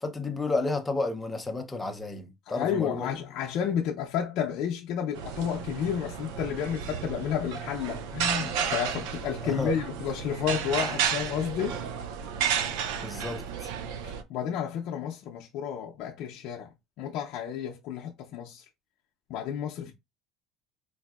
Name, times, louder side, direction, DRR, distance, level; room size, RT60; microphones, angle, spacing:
voice 1, 0.0-3.2 9.4-9.8 13.0-13.7, left 3 dB, 10° left, 0.6 m, -32 dB
voice 2, 2.5-11.8 14.0-16.7 17.0-18.6 19.3-19.9, left 8 dB, 60° left, 0.5 m, -31 dB
sound 1, 5.1-14.2, right 7 dB, 85° right, 0.4 m, -32 dB
4.0 x 2.6 x 2.4 m
cardioid pair, 140°, 0 cm